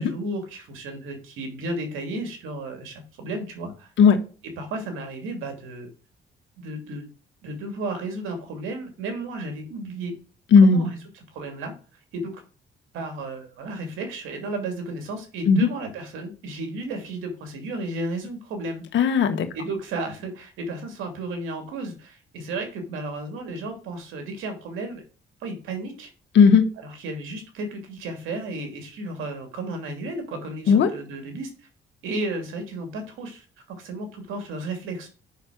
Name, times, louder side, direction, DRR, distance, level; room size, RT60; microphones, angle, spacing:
voice 1, 0.0-3.9 4.6-5.9 6.6-7.1 7.4-10.1 10.6-10.8 11.1-11.7 12.1-12.4 12.9-18.8 19.5-25.0 25.4-26.1 26.8-31.5 32.0-35.1, right 2 dB, 90° right, 5 dB, 2.6 m, -33 dB
voice 2, 10.5-10.9 15.5-15.7 18.9-19.5 26.3-26.7 30.7-30.9, left 5 dB, 70° left, 7 dB, 1.6 m, -15 dB
6.5 x 5.8 x 6.3 m, 0.37 s
cardioid pair, 90°, 20 cm